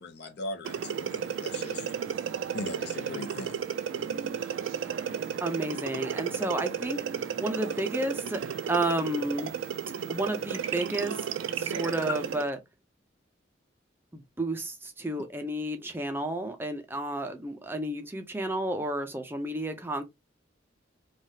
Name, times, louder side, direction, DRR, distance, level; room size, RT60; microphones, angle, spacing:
voice 1, 0.0-1.8 2.5-3.6, left 2 dB, 60° left, 0.7 m, -39 dB
sound 1, 0.6-12.5, right 7 dB, 90° right, 0.4 m, -33 dB
voice 2, 5.4-8.4 8.7-9.5 10.1-11.1 11.5-12.6 14.1-20.0, right 1 dB, 10° right, 0.4 m, -31 dB
3.2 x 2.3 x 2.7 m
head